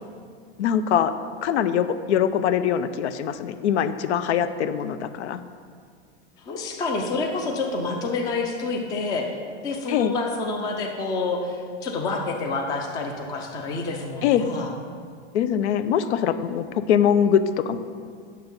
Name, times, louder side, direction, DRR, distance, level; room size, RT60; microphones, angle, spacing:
voice 1, 0.6-1.1 1.4-5.4 9.9-10.1 14.2-14.4 15.3-17.8, left 9 dB, 75° left, 11 dB, 0.7 m, -22 dB
voice 2, 6.4-9.3 9.6-14.7, left 3 dB, 10° left, 2 dB, 0.4 m, -28 dB
9.3 x 6.8 x 5.3 m, 2.1 s
supercardioid pair, 165°, 35 cm